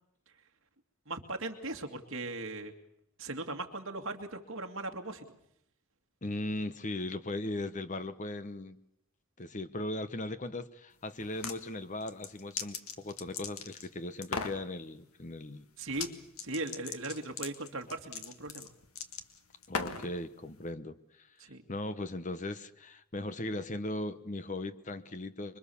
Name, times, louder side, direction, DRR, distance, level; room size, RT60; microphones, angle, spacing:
voice 1, 1.1-2.7 3.2-5.2 15.8-16.1 16.4-18.7 21.4-21.6, right 2 dB, 60° right, 4 dB, 2.4 m, -38 dB
voice 2, 6.2-8.8 9.4-15.7 19.7-25.6, left 2 dB, 35° left, 12 dB, 1.0 m, -38 dB
sound 1, 11.2-11.6 12.1-13.9 14.2-14.6 15.9-16.1 16.4-20.1, left 5 dB, 85° left, 1.8 m, -38 dB
26.0 x 23.0 x 7.1 m, 0.78 s
head